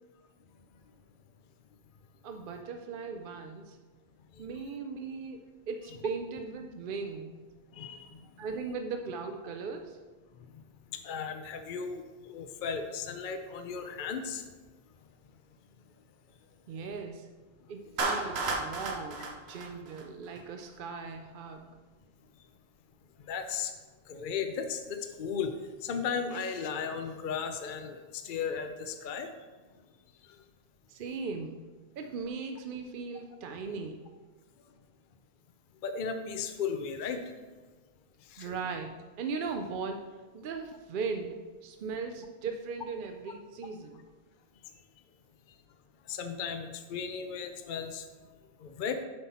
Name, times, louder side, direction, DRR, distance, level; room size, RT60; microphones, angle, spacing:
voice 1, 2.2-3.8 4.4-7.4 8.4-10.0 16.7-17.3 17.7-21.7 30.9-31.6 32.0-34.1 38.4-44.0, right 4 dB, 60° right, 5 dB, 0.7 m, -38 dB
voice 2, 7.7-8.2 10.5-10.6 10.9-14.4 23.2-23.7 24.1-29.3 30.3-30.4 35.8-37.3 38.3-38.5 46.1-48.1 48.6-49.0, left 6 dB, 60° left, 6 dB, 0.7 m, -35 dB
Clapping, 18.0-20.4, right 3 dB, 80° right, 1.2 m, -33 dB
8.0 x 5.6 x 4.2 m, 1.3 s
omnidirectional pair, 1.1 m